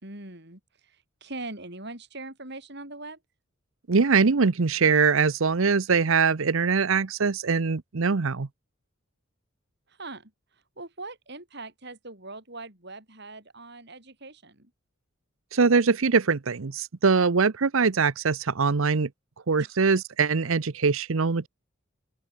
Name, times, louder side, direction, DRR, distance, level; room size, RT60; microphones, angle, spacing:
voice 1, 0.0-3.2 9.9-14.7 19.6-19.8, right 2 dB, 50° right, 5.7 m, -42 dB
voice 2, 3.9-8.5 15.5-19.1 19.5-21.5, right 5 dB, 70° right, 0.7 m, -22 dB
open air
head